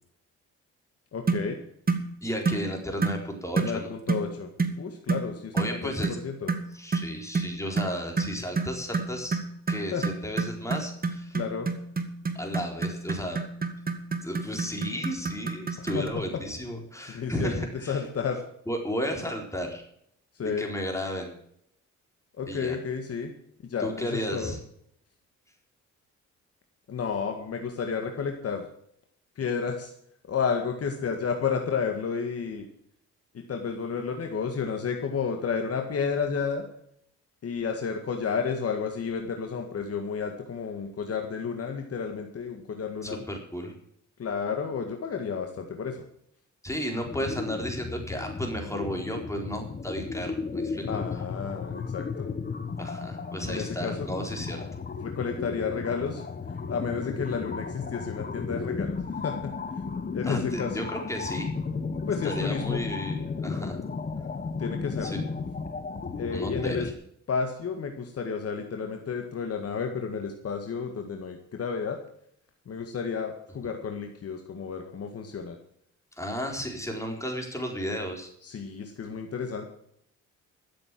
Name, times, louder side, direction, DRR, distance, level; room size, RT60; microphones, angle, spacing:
voice 1, 1.1-1.6 3.6-4.5 4.8-6.5 9.9-10.1 11.3-11.7 15.8-16.4 17.1-18.4 20.4-20.7 22.4-23.3 23.6-24.5 26.9-28.7 29.4-29.9 30.2-32.7 33.3-36.7 37.4-43.2 44.2-46.1 50.9-52.3 53.5-54.1 55.0-56.2 56.7-59.5 60.1-60.8 62.1-62.8 64.6-65.2 66.2-66.9 67.3-72.0 72.7-75.6 78.4-79.6, left 6 dB, 50° left, 4 dB, 1.9 m, -31 dB
sound 1, 1.3-1.5 1.9-2.1 2.4-2.7 3.0-3.2 3.6-3.8 4.1-4.3 4.6-4.8 5.1-5.3 5.6-5.8 6.0-6.2 6.5-16.1, right 4 dB, 30° right, 1.9 m, -29 dB
voice 2, 2.2-3.9 5.5-6.2 6.7-9.4 9.7-11.4 12.3-13.4 14.2-18.0 18.7-19.8 20.4-21.3 22.5-22.8 23.8-24.6 43.0-43.7 46.6-50.9 51.1-51.2 52.8-54.6 60.2-61.5 62.2-63.8 65.0-65.2 66.3-66.9 76.2-78.3, equal, 10° left, 2 dB, 4.1 m, -33 dB
sound 2, 47.0-66.9, left 4 dB, 30° left, 1.4 m, -34 dB
13.5 x 7.8 x 7.6 m, 0.70 s
cardioid pair, 90°, 30 cm